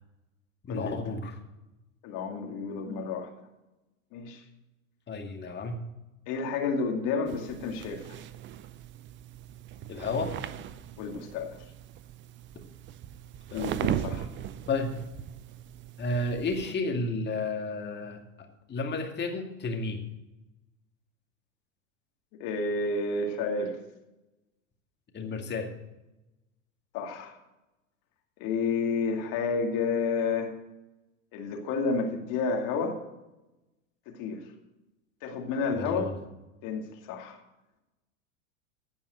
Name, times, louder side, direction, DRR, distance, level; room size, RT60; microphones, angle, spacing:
voice 1, 0.7-1.3 5.1-5.8 9.9-10.3 13.5-13.6 14.7-14.9 16.0-18.2 18.7-20.0 25.1-25.7 35.7-36.2, left 3 dB, 25° left, 3 dB, 2.3 m, -31 dB
voice 2, 2.0-3.3 4.1-4.4 6.3-8.0 11.0-11.6 13.5-14.3 22.4-23.8 26.9-27.3 28.4-30.5 31.3-33.0 34.1-34.4 35.2-36.1 36.6-37.4, left 4 dB, 50° left, 3 dB, 2.4 m, -30 dB
sound 1, 7.3-16.7, right 11 dB, 30° right, 0.6 m, -38 dB
15.5 x 5.5 x 7.9 m, 1.0 s
hypercardioid pair, 100°, 41 cm